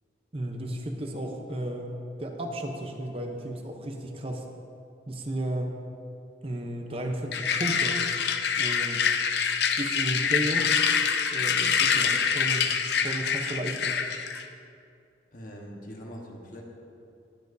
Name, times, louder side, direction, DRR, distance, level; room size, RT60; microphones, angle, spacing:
voice 1, 0.3-1.9 2.2-4.5 5.1-5.8 6.4-8.0 8.6-9.0 9.8-10.8 11.3-12.7 13.0-14.0, right 1 dB, 30° right, 3 dB, 0.7 m, -33 dB
sound 1, 7.3-14.4, left 6 dB, 60° left, 0.5 m, -26 dB
voice 2, 15.3-16.6, equal, 45° left, -1 dB, 1.3 m, -42 dB
20.0 x 7.6 x 2.7 m, 2.6 s
head